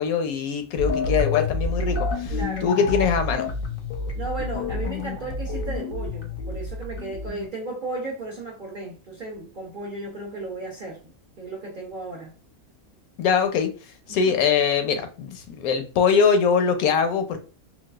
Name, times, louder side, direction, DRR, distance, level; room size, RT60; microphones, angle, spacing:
voice 1, 0.0-3.5 13.2-13.7 14.1-17.4, left 6 dB, 80° left, 1.0 m, -22 dB
sound 1, 0.8-7.5, left 3 dB, 55° left, 0.6 m, -28 dB
voice 2, 2.3-2.9 4.1-11.0 11.4-12.3 14.1-14.4, right 2 dB, 55° right, 0.6 m, -35 dB
3.9 x 2.4 x 2.3 m
omnidirectional pair, 1.6 m